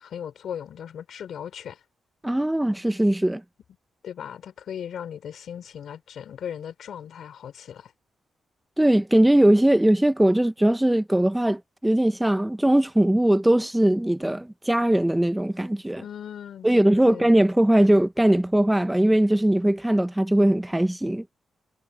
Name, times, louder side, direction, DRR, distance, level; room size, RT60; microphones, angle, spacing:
voice 1, 0.0-1.8 4.0-7.9 16.0-17.3, left 9 dB, 75° left, 4.9 m, -37 dB
voice 2, 2.2-3.4 8.8-16.0 16.6-21.2, right 1 dB, 10° right, 1.1 m, -20 dB
supercardioid pair, 60°, 0 cm